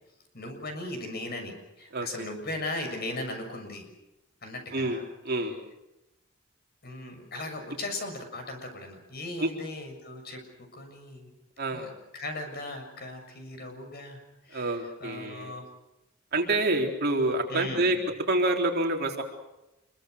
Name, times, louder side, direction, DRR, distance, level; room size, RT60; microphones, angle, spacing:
voice 1, 0.3-3.9 4.4-5.0 6.8-11.3 11.7-14.2 14.4-15.6 17.5-17.9, left 2 dB, 50° left, 5 dB, 6.8 m, -38 dB
voice 2, 1.9-2.3 4.7-5.6 9.4-9.5 11.6-12.0 14.5-15.6 16.3-19.2, right 2 dB, 50° right, 2 dB, 3.8 m, -28 dB
27.0 x 23.0 x 6.6 m, 0.94 s
head